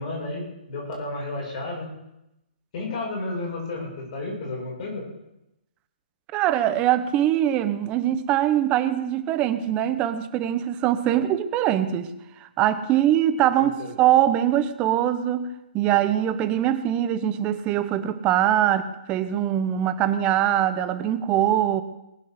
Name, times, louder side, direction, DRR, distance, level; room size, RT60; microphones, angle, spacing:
voice 1, 0.0-1.9 2.7-5.0 11.1-11.2 13.6-13.9, left 2 dB, 45° left, -2 dB, 7.3 m, -32 dB
voice 2, 6.3-12.1 12.4-15.5 15.7-21.8, right 11 dB, 20° right, 11 dB, 1.0 m, -22 dB
20.0 x 8.5 x 6.7 m, 0.89 s
hypercardioid pair, 150°, 5 cm